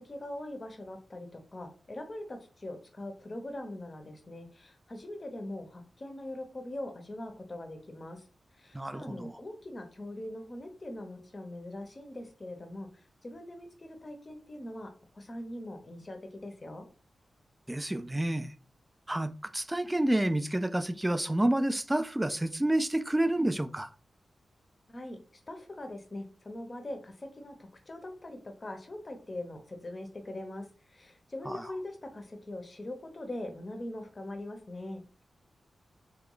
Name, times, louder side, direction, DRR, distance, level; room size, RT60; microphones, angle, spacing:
voice 1, 0.1-8.3 8.5-16.9 24.9-35.2, left 1 dB, 30° left, 0.7 m, -42 dB
voice 2, 8.7-9.3 17.7-18.5 19.1-23.9 31.5-31.6, right 1 dB, 10° right, 0.3 m, -29 dB
3.2 x 3.0 x 3.8 m
wide cardioid pair, 140°, 0 cm